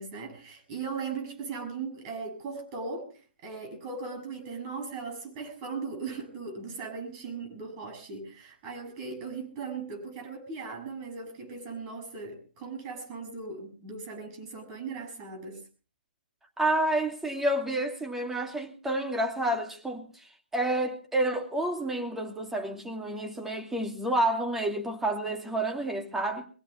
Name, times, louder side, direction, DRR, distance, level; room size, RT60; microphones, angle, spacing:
voice 1, 0.0-15.7, right 4 dB, 30° right, 7.4 m, -38 dB
voice 2, 16.6-26.5, right 1 dB, 5° right, 2.6 m, -29 dB
23.5 x 16.5 x 3.3 m
figure-of-eight pair, 135°, 6 cm